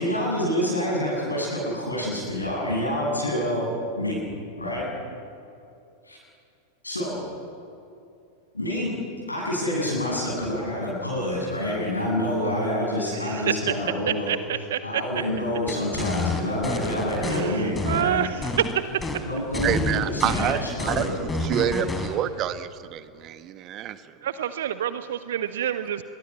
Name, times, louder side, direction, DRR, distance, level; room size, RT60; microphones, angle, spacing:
voice 1, 0.0-3.7 4.0-4.2 4.6-4.8 6.0-6.2 6.8-7.2 8.5-8.9 9.3-14.3 14.8-18.2 19.2-21.1, left 1 dB, 80° left, -4 dB, 7.9 m, -27 dB
voice 2, 13.1-13.7 14.1-15.2 17.2-18.5 24.2-26.0, right 10 dB, 60° right, 13 dB, 0.8 m, -28 dB
sound 1, 15.7-17.4 17.8-18.7 19.0-19.2 19.5-22.1, left 3 dB, 10° left, 3.9 m, -28 dB
voice 3, 19.6-21.1 21.4-24.0, right 10 dB, 35° right, 12 dB, 1.3 m, -27 dB
25.5 x 22.5 x 7.2 m, 2.6 s
figure-of-eight pair, 90°, 0 cm